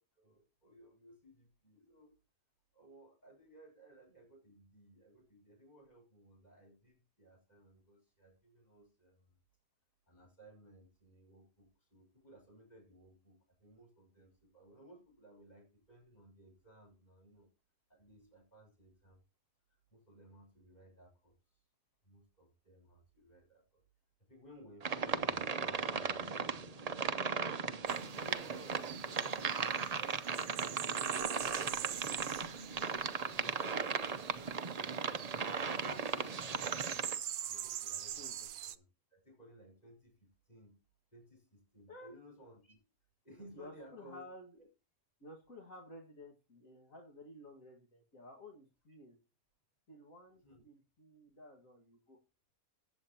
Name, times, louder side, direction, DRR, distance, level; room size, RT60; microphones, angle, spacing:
voice 1, 0.2-2.2 2.7-9.4 10.1-17.5 17.9-19.2 19.9-21.3 22.0-23.8 24.3-26.9 27.3-29.3 29.9-33.6 37.5-40.8 41.1-42.8 43.2-44.2 44.5-44.7 50.4-50.6, right 1 dB, 30° left, 2 dB, 6.3 m, -59 dB
sound 1, 24.8-37.2, right 5 dB, 40° right, 0.6 m, -37 dB
sound 2, 27.9-38.8, right 10 dB, 80° right, 1.2 m, -45 dB
voice 2, 43.5-44.5 45.2-49.2 49.9-52.2, left 1 dB, 65° left, 0 dB, 2.4 m, -54 dB
19.0 x 8.2 x 2.9 m, 0.30 s
omnidirectional pair, 1.5 m